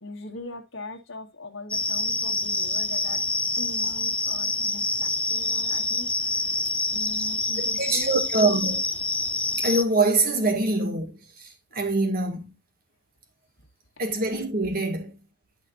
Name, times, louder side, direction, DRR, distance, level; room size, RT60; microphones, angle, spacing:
voice 1, 0.0-3.2 3.6-6.1 6.9-8.1, left 2 dB, 70° left, 1.6 m, -40 dB
sound 1, 1.7-9.8, left 2 dB, 5° left, 0.4 m, -27 dB
voice 2, 7.6-8.9 9.6-11.1 11.7-12.5 14.0-15.1, right 2 dB, 45° right, 2.0 m, -24 dB
11.0 x 5.8 x 2.6 m
head